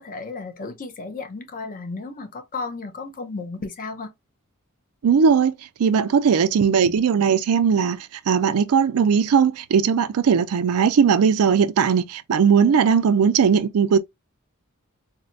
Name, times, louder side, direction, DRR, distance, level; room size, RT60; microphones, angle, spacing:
voice 1, 0.0-4.1 6.7-7.0, left 3 dB, 40° left, 0.6 m, -34 dB
voice 2, 5.0-5.5 5.8-14.0, right 6 dB, 85° right, 0.4 m, -18 dB
4.1 x 2.1 x 2.6 m
head